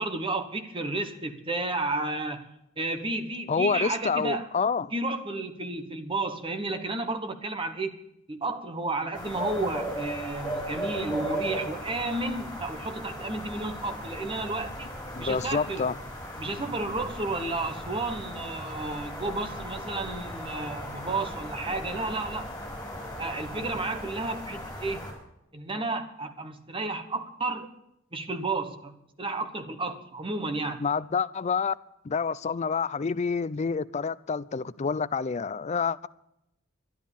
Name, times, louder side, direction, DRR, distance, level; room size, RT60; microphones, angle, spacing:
voice 1, 0.0-2.4 2.8-4.5 4.9-8.0 8.3-14.9 15.2-15.9 16.4-22.5 23.2-25.1 25.5-27.7 28.1-30.8, right 2 dB, 25° right, 1.3 m, -32 dB
voice 2, 3.5-4.9 15.1-16.0 30.8-31.7 32.0-36.1, left 5 dB, 35° left, 0.4 m, -28 dB
sound 1, 9.1-25.1, equal, 5° left, 5.4 m, -37 dB
12.5 x 10.5 x 7.2 m
head